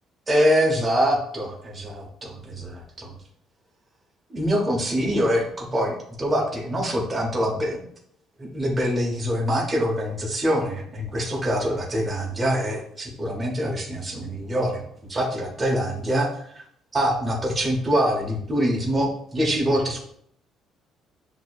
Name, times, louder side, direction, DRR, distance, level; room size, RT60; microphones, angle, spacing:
voice 1, 0.3-3.2 4.3-7.8 8.4-14.8 15.1-16.3 16.5-16.6 16.9-20.0, equal, 15° right, -2 dB, 0.7 m, -24 dB
6.0 x 2.6 x 2.3 m, 0.67 s
cardioid pair, 175°, 0 cm